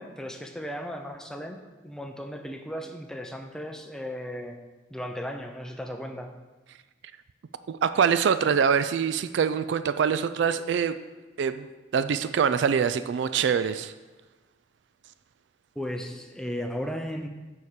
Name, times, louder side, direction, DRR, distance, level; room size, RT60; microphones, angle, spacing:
voice 1, 0.0-4.6 4.9-6.3 15.8-17.3, equal, 5° left, 5 dB, 0.5 m, -36 dB
voice 2, 7.7-10.9 11.4-11.7 11.9-13.9, right 7 dB, 65° right, 12 dB, 0.3 m, -24 dB
7.0 x 4.8 x 6.6 m, 1.2 s
head